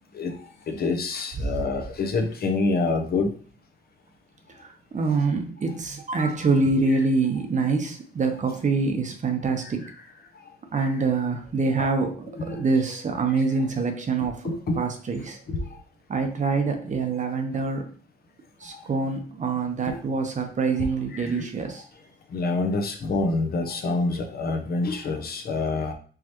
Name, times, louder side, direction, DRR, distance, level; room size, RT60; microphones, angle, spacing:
voice 1, 0.7-3.3 10.8-11.0 11.8-11.9 12.4-12.6 14.4-14.8 15.5-15.7 19.8-20.0 21.1-21.4 22.3-25.9, left 3 dB, 50° left, 5 dB, 0.8 m, -27 dB
voice 2, 4.6-9.8 10.7-14.4 14.7-15.4 16.1-17.9 18.6-21.8, right 4 dB, 40° right, 5 dB, 0.9 m, -25 dB
4.7 x 3.2 x 2.9 m, 0.43 s
cardioid pair, 90°, 20 cm